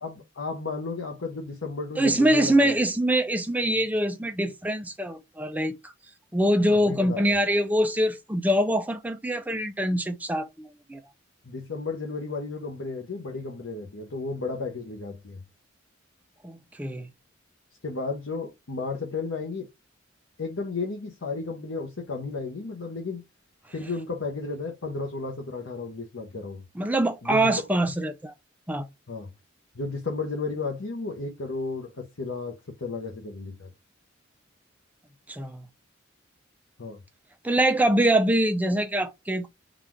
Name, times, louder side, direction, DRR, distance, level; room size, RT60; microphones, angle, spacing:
voice 1, 0.0-2.7 6.7-7.4 11.4-15.4 17.8-19.7 20.4-23.2 23.7-26.6 27.2-27.7 29.1-29.3 29.7-33.7 36.8-37.0, left 3 dB, 70° left, 0.9 m, -33 dB
voice 2, 2.0-5.9 6.3-11.0 16.4-17.1 26.8-28.3 28.7-28.9 35.3-35.6 37.4-39.5, right 1 dB, 10° right, 0.5 m, -24 dB
4.0 x 2.5 x 4.5 m
head